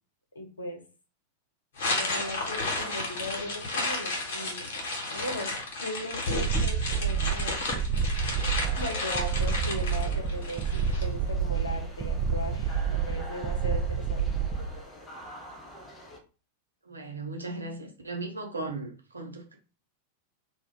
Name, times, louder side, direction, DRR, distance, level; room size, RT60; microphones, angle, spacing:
voice 1, 0.3-0.8 2.0-4.7 5.1-5.5 5.8-8.1 8.7-14.3, left 1 dB, 75° left, 0.7 m, -38 dB
sound 1, 1.8-11.0, left 2 dB, 60° left, 1.0 m, -32 dB
sound 2, 6.3-14.7, right 6 dB, 30° right, 0.4 m, -29 dB
sound 3, 8.3-16.2, equal, 20° left, 0.6 m, -46 dB
voice 2, 16.8-19.6, right 2 dB, 80° right, 0.6 m, -37 dB
2.1 x 2.1 x 3.6 m
figure-of-eight pair, 90°, 0 cm